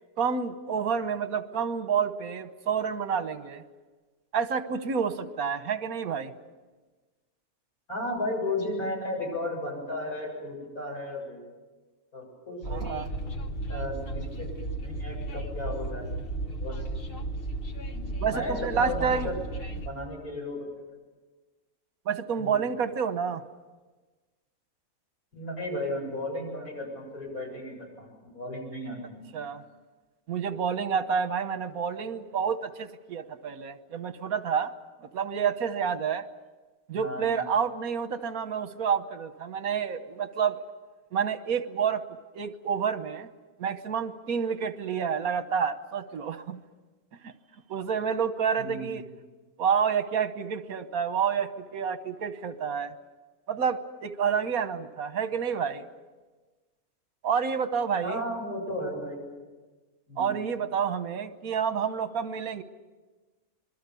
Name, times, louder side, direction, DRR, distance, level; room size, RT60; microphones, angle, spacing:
voice 1, 0.2-3.6 4.3-6.3 12.7-13.1 18.2-19.3 22.0-23.4 29.3-29.6 30.3-34.7 35.1-36.2 36.9-40.6 41.1-42.0 42.3-43.3 43.6-46.6 47.2-47.3 47.7-49.0 49.6-52.9 53.5-55.8 57.2-58.2 60.2-62.6, right 7 dB, 80° right, 11 dB, 1.6 m, -29 dB
voice 2, 7.9-11.4 12.1-12.9 13.7-14.5 14.8-16.1 16.6-16.9 17.9-19.3 19.8-20.7 22.4-22.6 25.3-29.3 36.9-37.4 48.6-48.9 58.0-59.2 60.1-60.3, left 1 dB, 90° left, -1 dB, 8.0 m, -34 dB
Train, 12.6-19.9, right 2 dB, 40° left, 1.5 m, -34 dB
26.0 x 22.5 x 7.0 m, 1.3 s
omnidirectional pair, 1.5 m